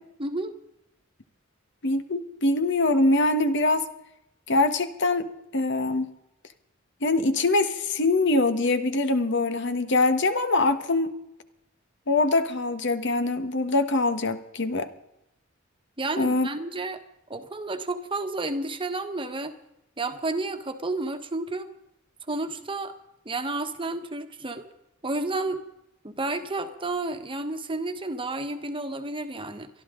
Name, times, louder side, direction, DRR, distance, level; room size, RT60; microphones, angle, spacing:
voice 1, 0.2-0.5 16.0-17.0 17.3-19.5 20.0-21.7 22.3-22.9 23.2-24.7 25.0-25.6 26.0-29.7, right 2 dB, 25° right, 8 dB, 1.3 m, -31 dB
voice 2, 1.8-3.8 4.5-5.3 5.5-6.1 7.0-11.1 12.1-14.9 16.2-16.5, left 2 dB, 60° left, 10 dB, 1.3 m, -23 dB
23.0 x 13.0 x 3.8 m, 0.85 s
head